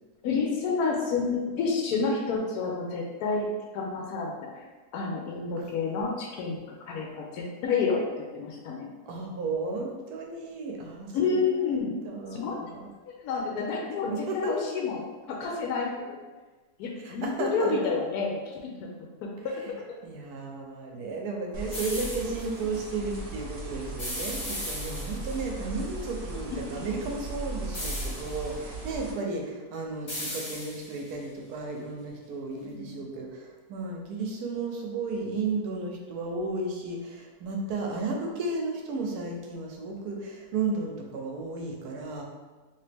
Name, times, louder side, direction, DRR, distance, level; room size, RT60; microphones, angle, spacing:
voice 1, 0.2-3.5 3.7-4.5 4.9-8.9 11.1-12.0 12.3-12.6 13.2-15.0 15.3-16.2 16.8-18.9 19.4-19.5 19.9-20.0 27.0-27.1 32.6-32.7, left 4 dB, 80° left, -1 dB, 1.1 m, -29 dB
voice 2, 9.1-12.9 14.0-14.5 17.0-17.9 20.0-42.2, right 3 dB, 90° right, 1 dB, 1.2 m, -34 dB
sound 1, 21.5-29.1, right 2 dB, 60° right, 0.9 m, -38 dB
sound 2, 21.7-22.5 24.0-25.4 27.7-28.5 30.1-31.1, left 1 dB, 30° left, 0.8 m, -36 dB
2.9 x 2.9 x 3.4 m, 1.3 s
omnidirectional pair, 1.6 m